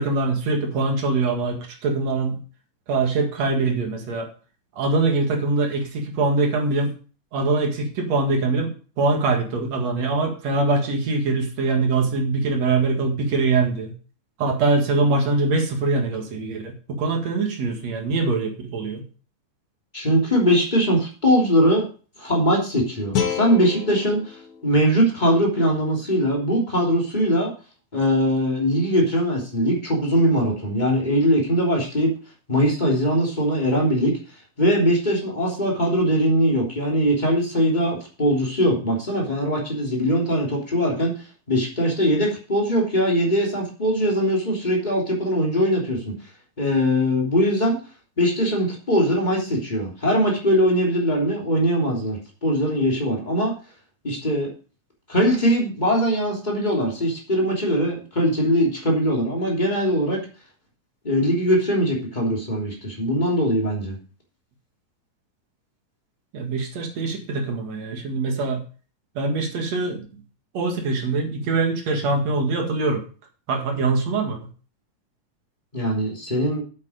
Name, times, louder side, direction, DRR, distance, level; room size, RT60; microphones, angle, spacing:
voice 1, 0.0-2.4 2.9-4.3 4.8-6.9 7.3-13.9 14.4-19.0 66.3-68.6 69.2-70.1 70.5-73.0 73.5-74.4, right 3 dB, 55° right, 3 dB, 2.9 m, -23 dB
voice 2, 19.9-21.9 22.2-27.5 27.9-32.1 32.5-34.2 34.6-41.1 41.5-46.1 46.6-47.8 48.2-53.5 54.0-54.5 55.1-60.2 61.0-63.9 75.7-76.6, equal, 15° left, -2 dB, 3.0 m, -21 dB
sound 1, 23.1-26.2, left 7 dB, 60° left, 1.5 m, -31 dB
8.9 x 8.2 x 5.0 m, 0.37 s
omnidirectional pair, 3.9 m